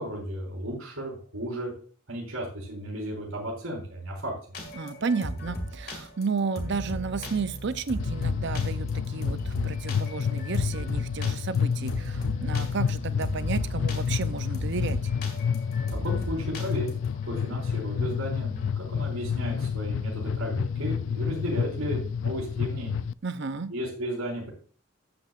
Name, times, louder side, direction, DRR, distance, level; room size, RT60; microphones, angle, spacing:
voice 1, 0.0-1.7 2.1-4.3 15.9-16.9 17.2-23.0 23.7-24.5, equal, 80° right, -4 dB, 4.2 m, -34 dB
sound 1, 4.5-18.7, equal, 45° left, 2.1 m, -37 dB
voice 2, 4.8-15.1 23.2-23.7, right 5 dB, 55° right, 13 dB, 0.6 m, -32 dB
sound 2, 8.0-23.1, left 7 dB, 60° left, 0.3 m, -29 dB
13.0 x 8.6 x 2.5 m, 0.41 s
head